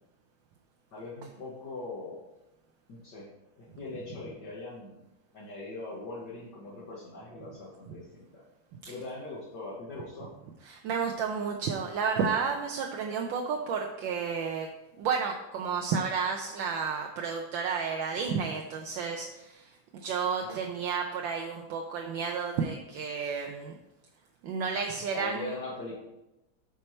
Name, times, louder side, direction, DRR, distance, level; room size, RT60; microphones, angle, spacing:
voice 1, 0.9-2.2 2.9-3.3 3.6-5.0 5.3-8.4 8.9-10.3 20.4-20.6 25.1-25.9, left 2 dB, 60° left, -7 dB, 2.0 m, -41 dB
voice 2, 10.7-14.7 15.0-23.7 24.4-25.5, right 6 dB, 75° right, 2 dB, 1.4 m, -31 dB
8.4 x 4.7 x 4.4 m, 0.94 s
omnidirectional pair, 2.2 m